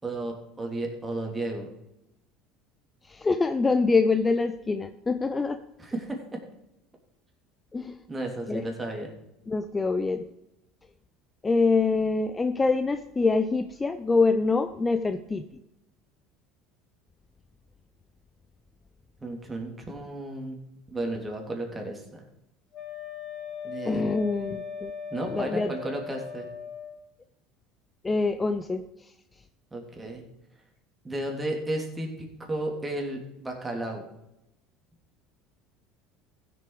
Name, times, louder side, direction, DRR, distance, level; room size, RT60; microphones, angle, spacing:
voice 1, 0.0-1.7 5.8-6.4 8.1-9.1 19.2-20.6 20.9-22.2 23.6-24.1 25.1-26.5 29.7-30.2 31.0-34.0, right 1 dB, 20° right, 1 dB, 3.3 m, -33 dB
voice 2, 3.1-5.6 7.7-8.0 8.5-8.7 9.5-10.3 11.4-15.4 23.9-24.9 25.2-25.7 28.0-28.8, left 3 dB, 20° left, 10 dB, 0.7 m, -25 dB
Wind instrument woodwind instrument, 22.7-27.0, left 6 dB, 40° left, 2.8 m, -38 dB
15.0 x 7.0 x 5.0 m, 0.87 s
hypercardioid pair, 75°, 0 cm